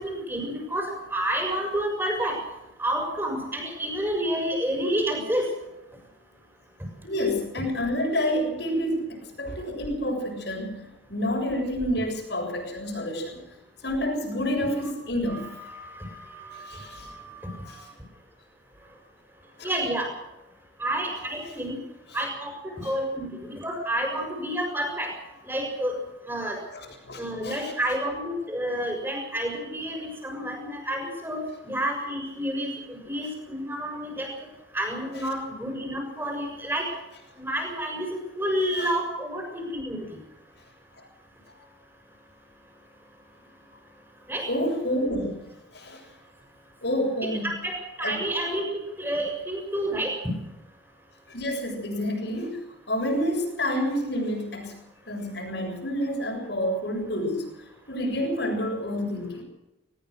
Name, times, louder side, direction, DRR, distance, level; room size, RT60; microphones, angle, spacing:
voice 1, 0.0-2.4 2.8-5.5 14.8-14.9 15.3-17.8 19.6-20.1 20.8-21.8 22.1-25.1 25.5-26.0 26.3-26.6 27.2-34.3 34.7-36.9 37.4-38.1 38.4-40.2 44.3-44.5 47.4-50.1, right 1 dB, 10° right, 2 dB, 6.4 m, -30 dB
voice 2, 7.0-10.8 11.1-13.4 13.8-15.5 16.5-17.1 19.6-19.7 22.8-22.9 26.7-27.7 38.8-38.9 41.0-41.1 41.5-41.6 44.5-45.3 45.7-46.0 46.8-47.5 48.0-48.2 51.3-52.6 52.9-54.8 55.1-57.5 57.9-59.4, equal, 60° left, 2 dB, 7.6 m, -29 dB
20.5 x 20.5 x 6.4 m, 0.93 s
head